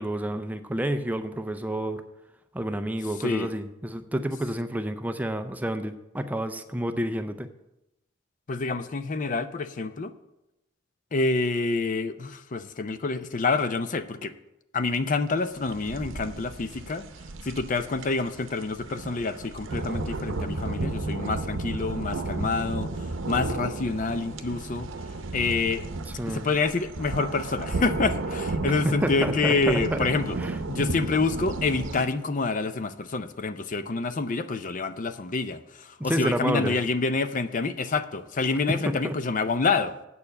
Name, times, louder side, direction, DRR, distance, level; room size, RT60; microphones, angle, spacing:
voice 1, 0.0-2.0 2.5-7.5 26.1-26.5 28.7-30.0 30.4-30.6 36.0-36.8 38.7-39.2, right 1 dB, 10° right, 0.4 m, -29 dB
voice 2, 8.5-10.1 11.1-14.3 14.7-17.0 17.4-22.9 23.3-24.9 25.3-25.8 26.3-30.4 30.7-40.0, left 3 dB, 40° left, 0.5 m, -27 dB
sound 1, 15.6-32.0, right 2 dB, 85° right, 0.7 m, -33 dB
8.4 x 6.8 x 6.6 m
head